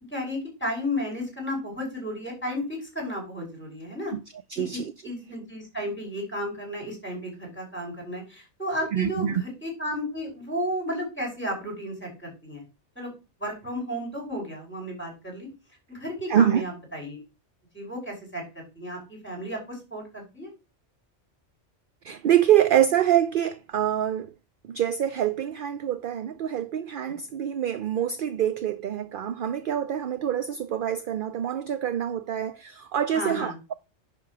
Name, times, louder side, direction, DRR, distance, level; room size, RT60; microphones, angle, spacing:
voice 1, 0.1-4.1 4.6-12.6 13.0-13.1 13.4-15.5 15.9-17.2 17.7-20.5 27.1-27.2 33.1-33.6, equal, 10° left, 5.3 m, -33 dB
voice 2, 4.5-4.9 8.9-9.4 16.3-16.6 22.0-24.3 24.6-33.7, right 10 dB, 60° right, 0.6 m, -25 dB
10.5 x 3.9 x 6.0 m
omnidirectional pair, 1.3 m